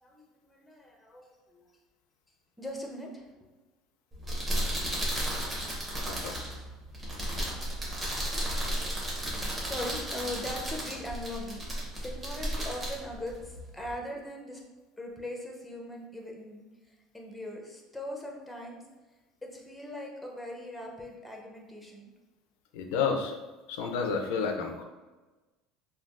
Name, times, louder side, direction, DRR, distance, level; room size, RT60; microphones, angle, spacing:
voice 1, 0.0-1.7 2.6-3.3 9.6-14.6 15.0-18.8 19.4-22.1, left 1 dB, 5° left, 0 dB, 0.6 m, -40 dB
sound 1, 4.1-13.9, right 1 dB, 25° right, 1.1 m, -34 dB
voice 2, 6.1-6.4 22.7-23.3 23.7-24.8, left 5 dB, 85° left, 4 dB, 0.4 m, -30 dB
3.4 x 2.2 x 2.4 m, 1.2 s
supercardioid pair, 115°, 0 cm